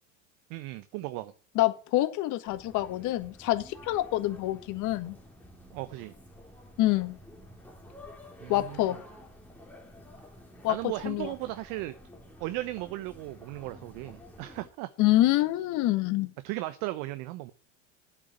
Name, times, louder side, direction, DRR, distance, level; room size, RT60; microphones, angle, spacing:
voice 1, 0.5-1.3 5.7-6.1 8.4-8.9 10.7-11.9 12.4-14.9 16.4-17.5, right 17 dB, 55° right, 1.1 m, -36 dB
voice 2, 1.5-5.1 6.8-7.2 8.5-9.0 10.6-11.3 15.0-16.3, left 16 dB, 50° left, 1.5 m, -26 dB
sound 1, 2.5-14.7, left 1 dB, 5° left, 3.0 m, -51 dB
8.4 x 6.2 x 8.2 m
hypercardioid pair, 90°, 39 cm